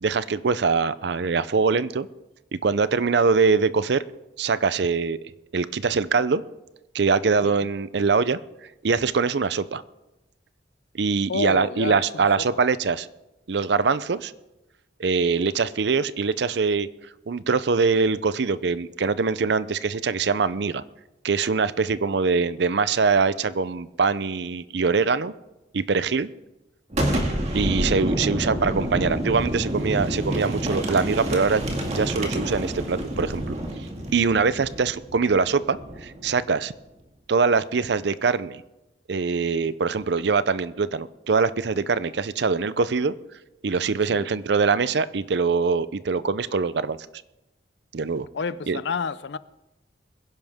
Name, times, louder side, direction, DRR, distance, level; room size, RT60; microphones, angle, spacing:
voice 1, 0.0-2.1 2.6-4.0 4.4-5.2 5.5-6.4 6.9-8.4 8.8-9.8 10.9-13.1 13.5-14.3 15.0-16.9 17.3-20.8 21.2-25.3 25.7-26.3 27.5-33.6 34.1-36.7 37.3-38.6 39.1-43.1 43.6-47.0 47.9-48.3 48.7-48.8, right 4 dB, 65° right, 0.5 m, -23 dB
voice 2, 11.3-12.5 28.5-28.6 44.1-44.3 48.3-49.4, left 5 dB, 70° left, 0.5 m, -30 dB
Boom, 26.9-36.5, right 1 dB, 35° right, 2.0 m, -28 dB
22.0 x 10.5 x 3.6 m
head